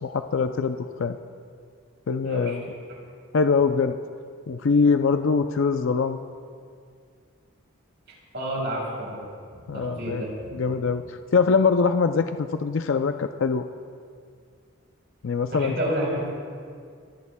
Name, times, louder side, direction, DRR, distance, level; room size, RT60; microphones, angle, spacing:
voice 1, 0.0-1.2 2.1-2.6 3.3-4.0 4.5-6.2 9.7-10.2 10.5-13.7 15.2-15.7, left 5 dB, 60° left, 8 dB, 0.4 m, -23 dB
voice 2, 2.2-2.6 8.3-9.2 9.5-10.6 15.5-16.3, right 1 dB, 50° right, -2 dB, 4.0 m, -30 dB
26.5 x 15.5 x 2.2 m, 2.2 s
head